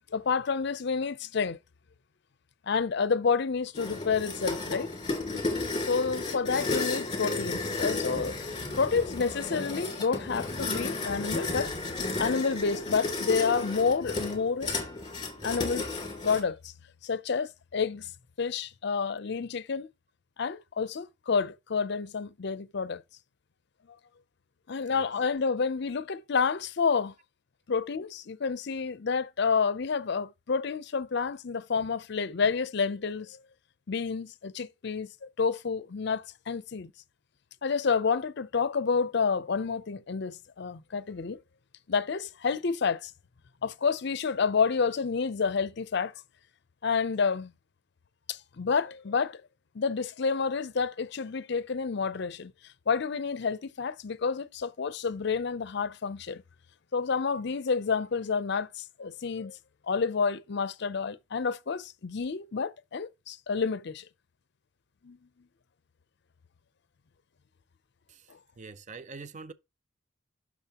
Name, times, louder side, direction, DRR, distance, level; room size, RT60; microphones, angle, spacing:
voice 1, 0.1-1.6 2.7-4.9 5.3-5.4 5.8-8.4 8.8-11.7 12.2-14.8 15.4-15.9 16.2-16.7 17.0-18.1 18.4-19.9 20.4-23.0 24.7-27.1 27.7-33.4 33.9-36.9 37.6-41.4 41.9-43.1 43.6-46.1 46.8-47.5 48.3-49.4 49.7-52.5 52.9-56.4 56.9-59.6 59.9-64.0 65.0-65.2, left 5 dB, 55° left, 0.5 m, -29 dB
sound 1, 3.7-16.4, left 3 dB, 20° left, 2.5 m, -33 dB
voice 2, 68.6-69.5, right 4 dB, 40° right, 0.5 m, -43 dB
10.0 x 6.3 x 2.9 m
head